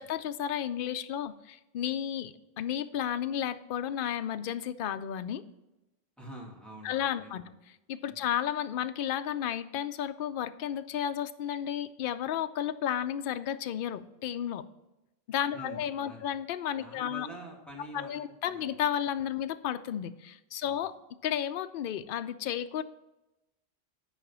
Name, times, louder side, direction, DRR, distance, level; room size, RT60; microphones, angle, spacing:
voice 1, 0.0-5.4 6.8-7.4 7.9-14.6 15.3-17.3 17.9-20.9 21.2-22.8, left 10 dB, 65° left, 10 dB, 0.7 m, -33 dB
voice 2, 6.2-7.5 8.1-8.3 15.5-16.3 16.8-18.2 18.5-18.6 20.6-20.9, right 1 dB, ahead, -3 dB, 2.1 m, -46 dB
9.5 x 5.0 x 5.5 m, 0.97 s
omnidirectional pair, 1.1 m